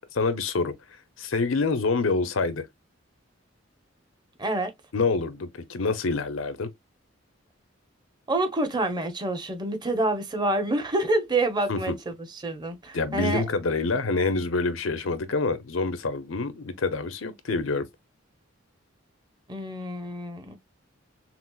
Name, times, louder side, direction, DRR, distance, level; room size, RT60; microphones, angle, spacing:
voice 1, 0.1-0.7 1.2-2.7 4.9-6.7 11.7-11.9 12.9-17.8, left 3 dB, 85° left, 0.7 m, -26 dB
voice 2, 4.4-4.7 8.3-12.1 12.4-13.4 19.5-20.6, right 2 dB, 20° right, 0.9 m, -27 dB
5.8 x 2.0 x 2.3 m
head